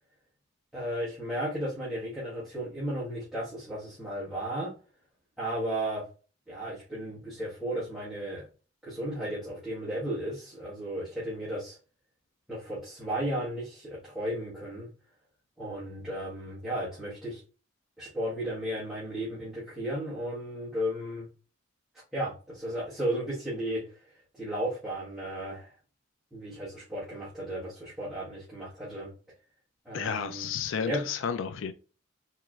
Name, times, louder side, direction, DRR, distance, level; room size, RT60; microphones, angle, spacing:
voice 1, 0.7-4.7 5.4-6.0 6.5-8.5 8.8-11.8 12.5-14.9 15.6-17.4 18.0-21.3 22.1-24.0 24.3-25.7 26.3-29.1 29.8-30.5 30.9-31.0, right 1 dB, ahead, 1.4 m, -34 dB
voice 2, 29.9-31.7, left 6 dB, 85° left, 0.4 m, -32 dB
4.5 x 2.9 x 2.3 m
head